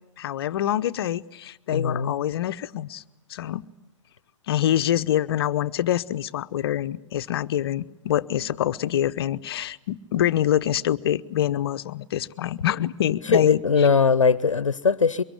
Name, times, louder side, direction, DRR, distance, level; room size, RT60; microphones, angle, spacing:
voice 1, 0.2-3.0 3.3-3.7 4.5-13.9, left 11 dB, 50° left, 13 dB, 0.9 m, -25 dB
voice 2, 1.7-2.1 13.3-15.2, left 5 dB, 80° left, 18 dB, 0.9 m, -20 dB
24.0 x 23.5 x 9.5 m, 0.97 s
figure-of-eight pair, 120°, 16 cm